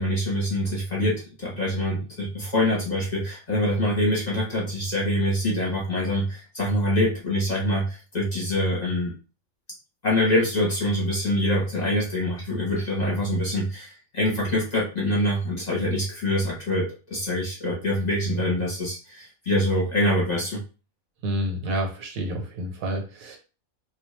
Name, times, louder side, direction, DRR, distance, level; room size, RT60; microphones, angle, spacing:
voice 1, 0.0-9.1 10.0-20.6, left 1 dB, 35° left, -5 dB, 0.8 m, -25 dB
voice 2, 21.2-23.4, right 1 dB, 80° right, 2 dB, 1.2 m, -29 dB
2.3 x 2.3 x 3.0 m, 0.33 s
omnidirectional pair, 1.4 m